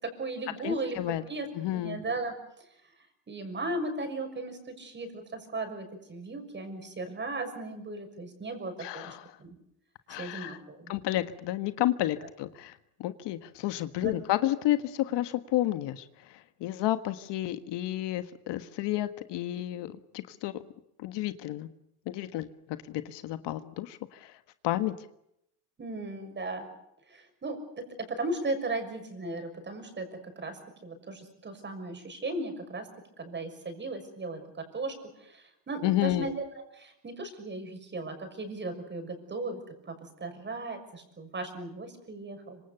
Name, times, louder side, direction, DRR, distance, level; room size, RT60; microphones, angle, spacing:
voice 1, 0.0-1.0 1.3-1.5 1.8-2.3 3.3-9.5 10.2-10.9 14.0-14.1 25.8-26.7 27.1-27.6 28.2-30.1 30.4-32.9 33.2-34.4 34.7-34.9 35.2-36.4 36.7-39.9 40.2-42.6, right 2 dB, 25° right, 7 dB, 6.3 m, -36 dB
voice 2, 0.6-1.2 1.5-2.0 8.8-9.3 10.1-10.6 10.9-12.7 13.0-20.6 21.0-21.7 22.1-24.3 24.6-24.9 35.8-36.3, left 14 dB, 60° left, 11 dB, 1.5 m, -31 dB
26.0 x 26.0 x 6.9 m, 0.78 s
cardioid pair, 130°, 46 cm